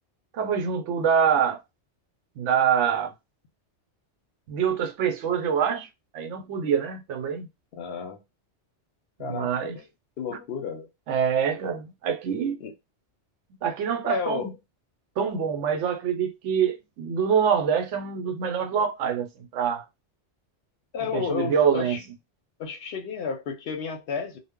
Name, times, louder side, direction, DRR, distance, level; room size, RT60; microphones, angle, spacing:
voice 1, 0.3-1.6 2.4-3.1 4.5-5.9 6.1-7.5 9.2-9.8 10.3-10.4 11.1-12.6 13.6-14.5 15.2-19.8 21.1-22.0, right 7 dB, 80° right, 0.9 m, -25 dB
voice 2, 7.7-8.2 9.2-9.8 10.2-10.9 12.6-12.7 14.0-14.5 20.9-22.0 22.6-24.4, left 6 dB, 65° left, 0.7 m, -32 dB
2.1 x 2.0 x 3.5 m
omnidirectional pair, 1.2 m